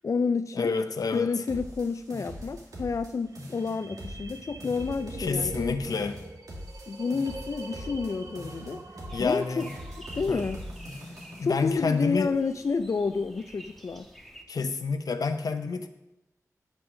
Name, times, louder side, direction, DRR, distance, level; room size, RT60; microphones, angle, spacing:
voice 1, 0.0-0.7 1.1-5.8 6.9-8.8 9.2-9.7 10.1-10.6 11.4-14.1, left 4 dB, 55° left, 9 dB, 0.4 m, -29 dB
voice 2, 0.5-1.3 5.2-6.2 9.1-9.7 10.3-10.4 11.4-12.3 14.5-15.9, left 4 dB, 90° left, 9 dB, 0.7 m, -28 dB
sound 1, 1.5-3.1 3.4-4.4 4.6-8.1 8.4-9.4 9.6-11.5, equal, 90° right, 2.4 m, -41 dB
sound 2, 3.3-10.3, right 3 dB, 70° right, 1.1 m, -44 dB
sound 3, 9.1-14.4, right 1 dB, 5° left, 1.3 m, -50 dB
9.7 x 6.1 x 6.1 m, 0.92 s
wide cardioid pair, 85°, 6 cm